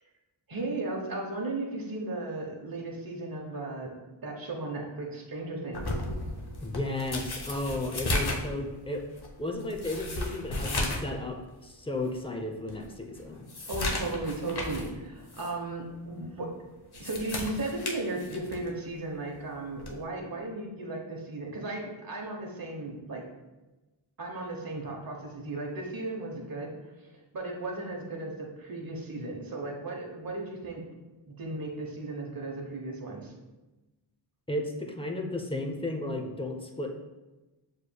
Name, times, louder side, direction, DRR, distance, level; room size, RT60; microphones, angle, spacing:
voice 1, 0.5-5.9 13.7-16.5 17.0-23.3 24.2-27.1 27.3-30.8 31.3-33.3, right 2 dB, 45° right, 0 dB, 1.1 m, -36 dB
sound 1, 5.7-11.1 11.5-11.6 12.2-12.3 12.7-14.9 15.3-15.5 16.7-18.7 19.8-20.0, left 2 dB, 50° left, 0.9 m, -34 dB
voice 2, 6.6-9.0 9.4-13.5 34.5-36.9, left 2 dB, 10° left, 3 dB, 0.6 m, -34 dB
6.6 x 3.2 x 2.3 m, 1.1 s
cardioid pair, 50°, 48 cm